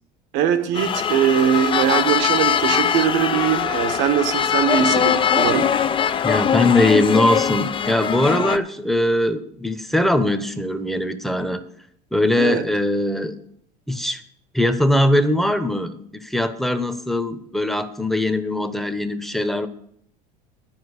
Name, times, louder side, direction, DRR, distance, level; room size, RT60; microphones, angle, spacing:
voice 1, 0.3-5.7 12.4-12.6, right 9 dB, 65° right, 1.3 m, -21 dB
sound 1, 0.7-8.6, left 8 dB, 25° left, 0.5 m, -21 dB
voice 2, 6.2-11.6 12.1-13.4 13.9-14.2 14.5-19.7, left 1 dB, ahead, 1.0 m, -21 dB
12.0 x 4.6 x 8.1 m
hypercardioid pair, 85°, 21 cm